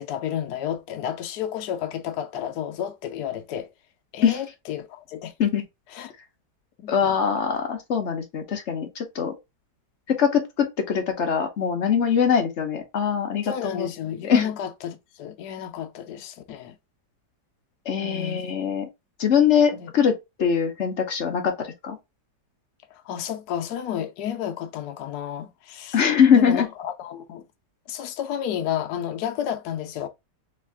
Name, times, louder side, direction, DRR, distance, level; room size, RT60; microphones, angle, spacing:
voice 1, 0.0-3.7 4.1-5.3 5.9-6.1 6.8-7.2 13.4-16.7 18.0-18.4 19.7-19.9 22.9-26.0 26.3-27.4 27.9-30.1, left 9 dB, 70° left, 1.2 m, -31 dB
voice 2, 6.9-9.3 10.1-13.9 14.2-14.4 17.9-18.9 19.2-22.0 25.9-26.7, left 7 dB, 50° left, 0.9 m, -22 dB
3.4 x 3.3 x 3.3 m
omnidirectional pair, 1.9 m